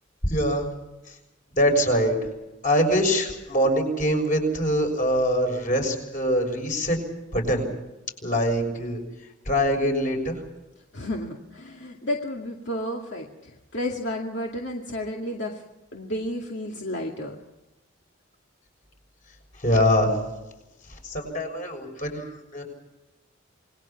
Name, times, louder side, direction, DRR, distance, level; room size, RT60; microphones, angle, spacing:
voice 1, 0.2-0.7 1.1-1.2 1.6-2.2 2.6-7.0 7.3-7.6 8.2-9.0 9.4-10.4 19.6-20.2 21.0-22.6, equal, 40° left, 3 dB, 6.5 m, -23 dB
voice 2, 10.9-15.6 15.9-17.4, left 1 dB, 60° left, 0 dB, 2.3 m, -32 dB
28.0 x 21.0 x 6.0 m, 0.97 s
head